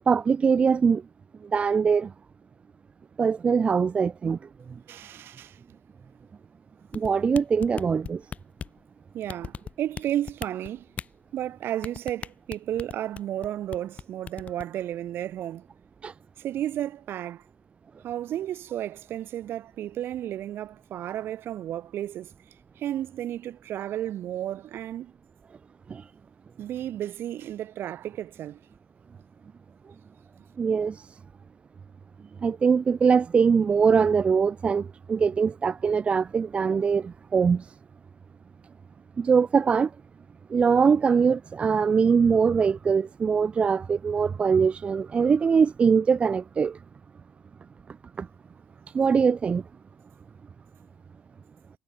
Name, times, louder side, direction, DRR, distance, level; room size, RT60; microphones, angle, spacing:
voice 1, 0.1-1.0 1.5-2.1 3.2-4.4 6.9-8.2 16.0-16.1 25.9-26.0 30.6-30.9 32.4-37.6 39.2-39.9 40.5-46.7 48.2-48.3 48.9-49.6, right 6 dB, 20° right, 1.3 m, -22 dB
voice 2, 4.9-5.6 9.1-10.9 11.3-15.7 16.4-17.4 18.0-22.3 22.8-25.1 26.6-28.6, right 12 dB, 45° right, 7.4 m, -33 dB
sound 1, 6.9-8.8 9.3-10.0 10.3-11.1 11.8-13.5 13.7-14.0 14.3-14.6, left 7 dB, 25° left, 1.9 m, -36 dB
cardioid pair, 175°, 5 cm